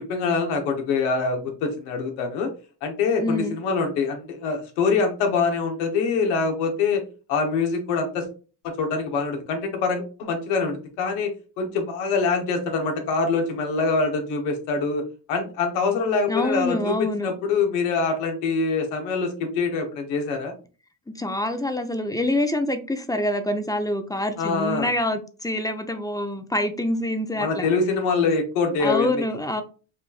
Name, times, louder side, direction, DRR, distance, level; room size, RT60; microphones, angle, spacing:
voice 1, 0.1-2.5 2.8-7.0 7.3-8.2 8.6-11.3 11.6-15.0 15.3-20.5 24.4-24.9 27.4-29.1, left 4 dB, 85° left, 4 dB, 1.1 m, -24 dB
voice 2, 3.2-3.6 16.3-17.3 21.1-27.7 28.8-29.6, left 1 dB, 10° left, 8 dB, 0.5 m, -26 dB
5.0 x 2.5 x 2.3 m, 0.36 s
supercardioid pair, 65°, 50 cm